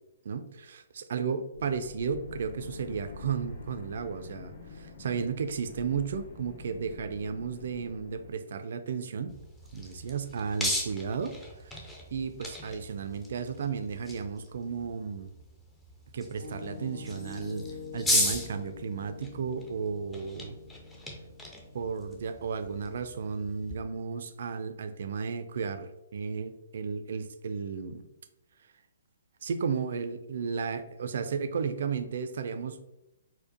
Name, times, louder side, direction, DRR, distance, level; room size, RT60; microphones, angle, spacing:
voice 1, 0.2-9.3 9.7-11.3 11.6-15.3 16.1-17.7 17.9-20.6 21.7-28.1 29.4-32.8, right 6 dB, 55° right, 9 dB, 0.3 m, -34 dB
sound 1, 1.5-8.3, left 5 dB, 65° left, 1.5 m, -47 dB
sound 2, 9.3-23.8, left 1 dB, 10° left, 0.5 m, -37 dB
Piano, 16.4-24.2, left 4 dB, 85° left, 0.8 m, -46 dB
4.3 x 2.1 x 2.7 m, 0.91 s
figure-of-eight pair, 125°, 0 cm